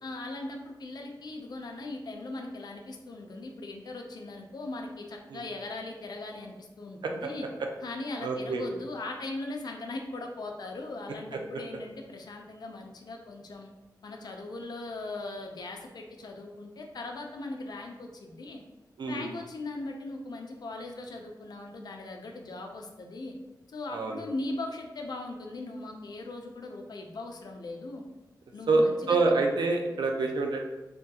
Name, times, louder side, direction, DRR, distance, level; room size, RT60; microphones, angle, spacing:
voice 1, 0.0-7.5 7.8-13.7 14.0-18.6 19.1-23.3 23.7-28.0 28.5-29.2, left 2 dB, 65° left, 2 dB, 0.5 m, -39 dB
voice 2, 8.2-8.6 19.0-19.3 23.9-24.2 28.7-30.6, right 3 dB, 85° right, 2 dB, 0.4 m, -26 dB
3.4 x 2.3 x 2.7 m, 1.1 s
wide cardioid pair, 80°, 7 cm